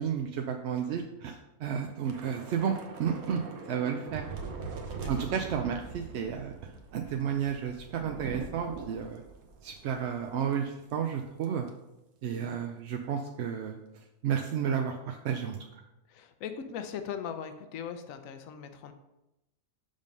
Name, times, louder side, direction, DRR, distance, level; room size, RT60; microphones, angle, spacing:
voice 1, 0.0-3.4 3.7-4.2 5.1-6.5 6.9-9.2 9.6-11.7 12.2-13.8 14.2-15.6, right 8 dB, 65° right, 4 dB, 0.7 m, -32 dB
Thunder / Rain, 2.0-10.6 10.9-11.1 11.4-11.7, right 4 dB, 90° right, 1.3 m, -42 dB
voice 2, 5.0-5.4 12.4-12.6 16.1-18.9, left 7 dB, 70° left, 8 dB, 1.0 m, -40 dB
5.3 x 5.2 x 5.3 m, 0.93 s
omnidirectional pair, 1.5 m